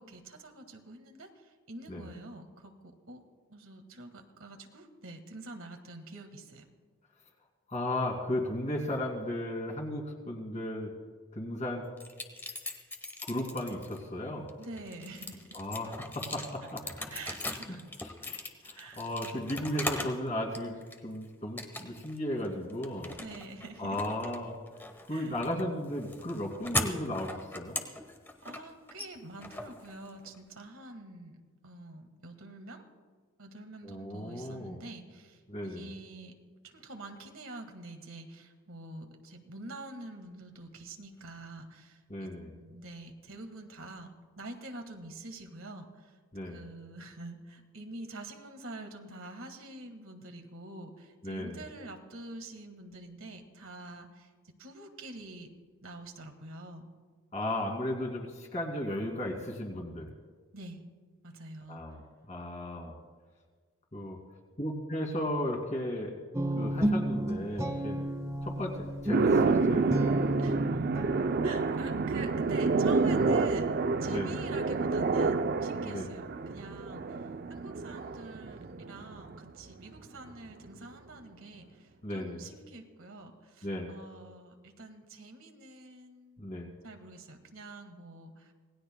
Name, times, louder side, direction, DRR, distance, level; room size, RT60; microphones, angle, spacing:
voice 1, 0.0-2.7 3.1-3.2 3.5-6.6 14.6-15.6 17.1-17.8 18.7-19.1 23.2-24.0 25.1-25.4 28.4-32.8 33.4-36.3 36.6-44.1 44.4-46.1 46.4-54.3 54.6-55.5 55.8-56.9 60.5-60.8 61.2-61.8 70.4-70.6 71.4-73.7 74.0-77.2 77.5-86.5 86.8-88.5, right 2 dB, 70° right, 5 dB, 1.6 m, -46 dB
voice 2, 7.7-10.9 11.3-11.9 13.2-14.5 15.5-17.2 17.7-18.4 18.6-23.1 23.8-24.6 25.1-27.8 33.8-34.8 35.5-35.9 42.1-42.5 46.3-46.6 51.2-51.6 57.3-60.1 61.7-62.9 63.9-64.2 64.6-66.1 66.5-68.0 68.4-69.9 74.0-74.3 75.8-76.1 82.0-82.4 83.6-84.0 86.4-86.7, left 1 dB, 35° left, 0 dB, 2.5 m, -35 dB
sound 1, 12.0-14.0 14.5-20.2 20.5-21.2 21.6-22.2 22.4-30.4, left 2 dB, 10° left, 1.0 m, -39 dB
Guitar, 66.3-71.5, right 1 dB, 15° right, 0.9 m, -32 dB
sound 2, 69.1-79.5, right 4 dB, 45° right, 0.5 m, -29 dB
26.5 x 19.0 x 2.2 m, 1.5 s
head